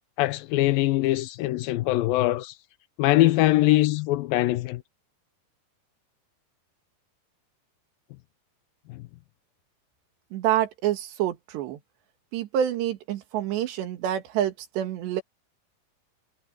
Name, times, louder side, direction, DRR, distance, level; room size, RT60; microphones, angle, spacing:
voice 1, 0.2-2.5 3.0-4.8 8.9-9.0, left 17 dB, 90° left, 2.1 m, -22 dB
voice 2, 10.3-11.8 12.3-15.2, right 11 dB, 85° right, 4.0 m, -27 dB
omnidirectional pair, 4.9 m